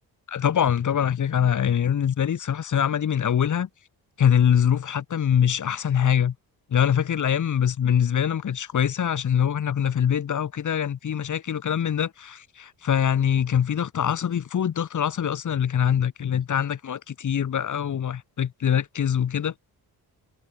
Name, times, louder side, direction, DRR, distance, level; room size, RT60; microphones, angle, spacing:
voice 1, 0.3-3.7 4.2-6.3 6.7-19.5, left 8 dB, 50° left, 3.7 m, -23 dB
cardioid pair, 140°, 37 cm